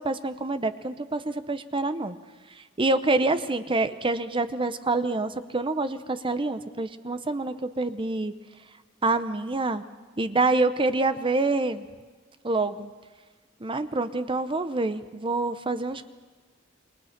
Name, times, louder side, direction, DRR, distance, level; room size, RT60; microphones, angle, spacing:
voice 1, 0.0-2.2 2.8-8.3 9.0-9.8 10.2-11.8 12.4-12.9 13.6-16.1, right 2 dB, 25° right, 11 dB, 0.8 m, -26 dB
28.5 x 22.5 x 5.9 m, 1.4 s
head